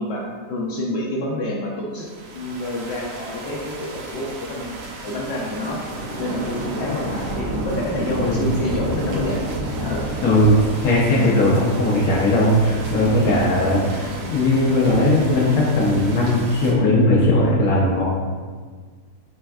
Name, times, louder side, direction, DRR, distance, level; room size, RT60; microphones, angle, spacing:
voice 1, 0.0-2.1 2.3-4.8 5.0-5.8 6.2-10.1 13.1-13.5, left 1 dB, 70° left, -4 dB, 0.6 m, -28 dB
sound 1, 2.0-16.7, right 1 dB, 70° right, 0.6 m, -30 dB
voice 2, 10.2-10.5 10.8-18.0, left 1 dB, 90° left, -5 dB, 1.2 m, -18 dB
4.3 x 3.3 x 2.3 m, 1.5 s
omnidirectional pair, 1.6 m